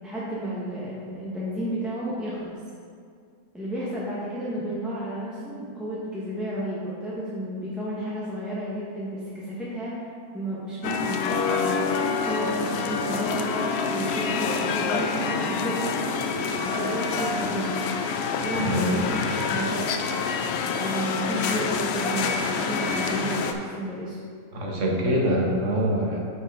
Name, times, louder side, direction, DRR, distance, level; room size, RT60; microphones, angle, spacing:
voice 1, 0.0-2.5 3.5-9.9 10.3-11.9 12.2-16.2 16.6-17.8 18.4-20.1 20.6-24.2, right 1 dB, ahead, -9 dB, 1.2 m, -32 dB
sound 1, 10.8-23.5, left 5 dB, 65° left, 0.7 m, -27 dB
voice 2, 18.6-19.3 24.5-26.2, equal, 60° right, -1 dB, 1.4 m, -25 dB
8.9 x 4.8 x 3.8 m, 2.2 s
omnidirectional pair, 1.5 m